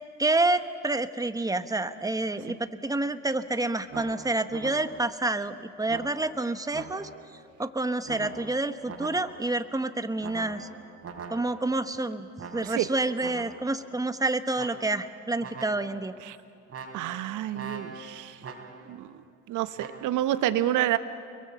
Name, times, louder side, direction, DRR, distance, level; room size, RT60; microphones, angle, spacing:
voice 1, 0.2-2.6 2.8-10.7 11.3-16.1, right 2 dB, 10° right, 11 dB, 1.2 m, -28 dB
sound 1, 3.9-5.2 5.9-7.4 8.1-9.6 10.2-11.8 12.4-13.8 14.5-15.1 15.4-16.1 16.7-19.0 19.8-20.1, right 5 dB, 45° right, 3.7 m, -43 dB
voice 2, 16.9-18.4 18.9-19.2 19.5-21.0, right 13 dB, 65° right, 12 dB, 1.2 m, -28 dB
29.5 x 22.5 x 5.7 m, 2.3 s
hypercardioid pair, 55°, 33 cm